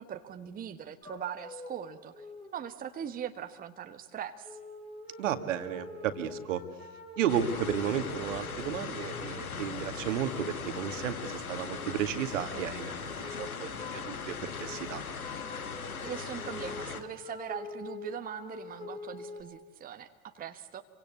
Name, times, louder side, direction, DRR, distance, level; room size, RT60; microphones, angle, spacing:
voice 1, 0.0-4.6 16.0-20.8, right 9 dB, 20° right, 7 dB, 1.2 m, -41 dB
sound 1, 1.0-1.9 2.1-2.6 3.4-3.5 4.4-9.7 10.1-11.3 11.6-12.0 12.3-12.8 13.0-14.2 14.5-19.4, left 3 dB, 15° left, 5.9 m, -45 dB
voice 2, 5.2-6.6 7.2-15.0, right 9 dB, 60° right, 9 dB, 2.0 m, -33 dB
sound 2, 7.3-17.0, left 5 dB, 75° left, 1.8 m, -39 dB
28.0 x 24.0 x 8.4 m, 1.2 s
figure-of-eight pair, 85°, 43 cm